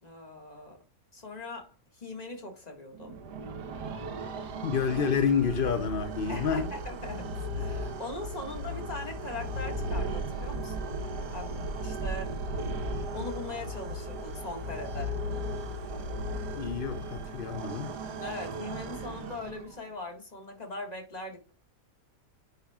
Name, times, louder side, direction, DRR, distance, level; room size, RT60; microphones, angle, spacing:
voice 1, 0.0-0.8 1.1-3.2 6.3-12.4 13.1-15.2 18.2-21.5, left 2 dB, 25° left, 1.8 m, -41 dB
sound 1, 2.9-19.9, right 1 dB, 75° right, 1.5 m, -36 dB
voice 2, 4.6-6.7 16.5-17.9, left 6 dB, 55° left, 0.6 m, -28 dB
10.0 x 5.5 x 2.3 m
omnidirectional pair, 1.8 m